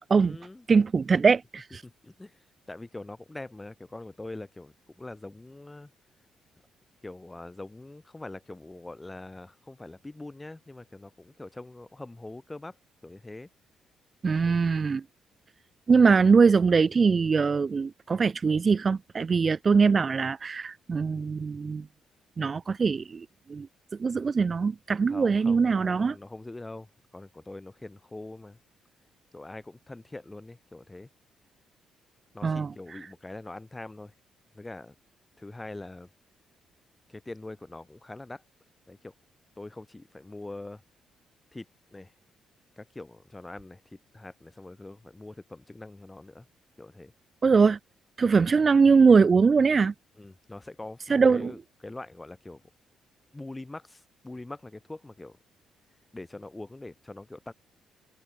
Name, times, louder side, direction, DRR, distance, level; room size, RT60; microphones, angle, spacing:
voice 1, 0.1-0.7 1.8-2.4 2.7-5.9 7.0-12.7 13.0-13.5 14.4-14.6 25.1-26.9 27.1-28.6 29.3-31.1 32.3-34.1 34.5-34.9 35.4-36.1 37.1-38.4 38.9-39.1 39.6-40.8 41.5-41.7 41.9-42.1 42.8-43.8 44.1-46.5 46.8-47.1 50.2-52.6 53.3-55.4 56.1-57.5, left 2 dB, 15° left, 4.3 m, -43 dB
voice 2, 0.7-1.8 14.2-15.0 15.9-21.8 22.4-23.2 23.5-23.7 24.0-26.1 32.4-32.7 47.4-47.8 48.2-49.9 51.1-51.5, right 5 dB, 35° right, 0.7 m, -22 dB
cardioid pair, 90°, 0 cm